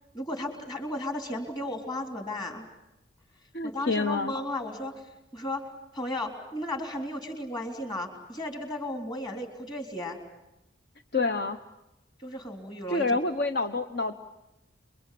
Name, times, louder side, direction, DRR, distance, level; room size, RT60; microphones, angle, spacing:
voice 1, 0.1-2.6 3.6-5.6 5.9-10.2 12.2-13.2, left 1 dB, 20° left, 4 dB, 3.8 m, -35 dB
voice 2, 3.5-4.3 11.1-11.6 12.9-14.1, left 3 dB, 50° left, 7 dB, 0.9 m, -27 dB
29.0 x 23.0 x 8.6 m, 0.92 s
head